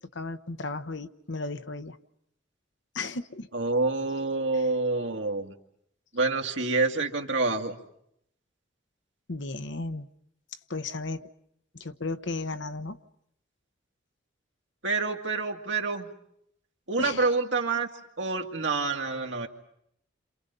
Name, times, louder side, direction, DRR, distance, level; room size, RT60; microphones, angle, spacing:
voice 1, 0.1-2.0 2.9-3.5 4.5-4.6 9.3-10.1 10.7-11.3 11.7-13.0 17.0-17.3, left 3 dB, 65° left, 9 dB, 1.1 m, -34 dB
voice 2, 3.5-5.5 6.1-7.8 14.8-16.1 16.9-17.9 18.2-19.5, right 3 dB, 70° right, 2 dB, 2.1 m, -27 dB
29.0 x 27.5 x 5.5 m, 0.73 s
head